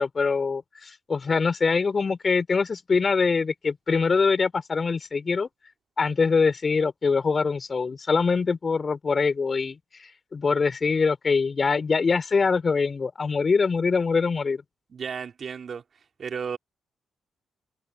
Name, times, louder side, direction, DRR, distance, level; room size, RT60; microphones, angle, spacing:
voice 1, 0.0-5.5 6.0-14.6, left 4 dB, 45° left, 4.5 m, -24 dB
voice 2, 14.9-15.8 16.2-16.6, right 6 dB, 55° right, 3.8 m, -33 dB
hypercardioid pair, 45°, 0 cm